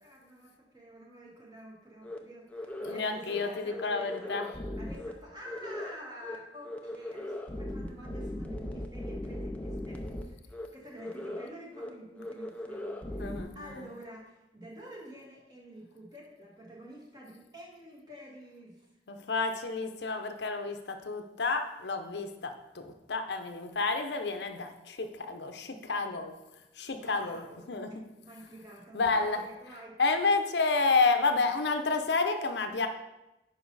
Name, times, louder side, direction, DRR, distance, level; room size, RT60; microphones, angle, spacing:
voice 1, 0.0-4.3 4.8-18.9 27.0-27.7 28.2-30.0, equal, 25° right, -3 dB, 2.0 m, -49 dB
sound 1, 2.0-2.2 2.5-3.0 3.3-3.4 3.7-5.1 5.4-6.0 6.2-6.4 6.6-10.2 10.5-10.7 11.0-11.5 11.8-11.9 12.2-13.4, left 1 dB, 10° left, 0.5 m, -38 dB
voice 2, 2.8-4.5 13.2-13.7 19.1-26.3 26.8-27.4 27.7-28.0 28.9-29.4 30.0-32.9, left 3 dB, 80° left, 6 dB, 0.7 m, -30 dB
9.6 x 5.5 x 4.0 m, 0.96 s
head